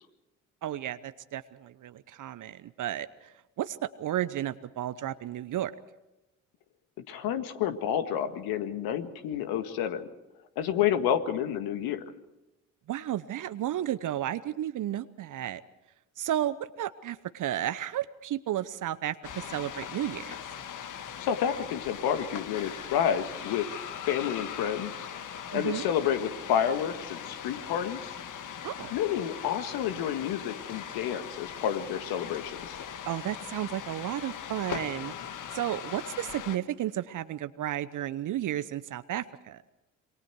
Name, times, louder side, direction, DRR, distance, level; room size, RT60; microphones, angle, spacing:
voice 1, 0.6-3.3 3.6-5.7 12.9-15.6 16.2-20.3 25.5-25.8 28.6-28.9 33.0-35.1 35.5-39.6, right 12 dB, 50° right, 14 dB, 0.9 m, -33 dB
voice 2, 7.1-10.1 10.6-12.0 21.2-23.7 24.1-24.9 25.5-28.1 28.9-32.8, left 9 dB, 65° left, 8 dB, 1.8 m, -29 dB
sound 1, 19.2-36.6, left 8 dB, 50° left, 1.6 m, -40 dB
27.0 x 24.0 x 4.7 m, 0.96 s
hypercardioid pair, 50°, 39 cm